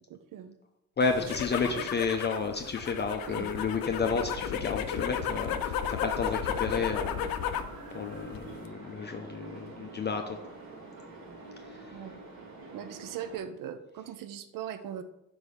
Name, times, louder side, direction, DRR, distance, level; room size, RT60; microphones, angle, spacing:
voice 1, 0.1-0.5 1.6-1.9 3.3-3.5 11.9-12.1 12.7-15.0, right 9 dB, 70° right, 10 dB, 0.6 m, -40 dB
sound 1, 1.0-7.8 8.1-8.7, left 8 dB, 90° left, 0.6 m, -34 dB
voice 2, 1.0-7.3 7.9-10.4 11.7-12.0, left 4 dB, 30° left, 4 dB, 0.5 m, -31 dB
sound 2, 3.6-13.4, right 2 dB, 85° right, 2.0 m, -46 dB
5.0 x 4.7 x 5.5 m, 0.87 s
cardioid pair, 140°, 34 cm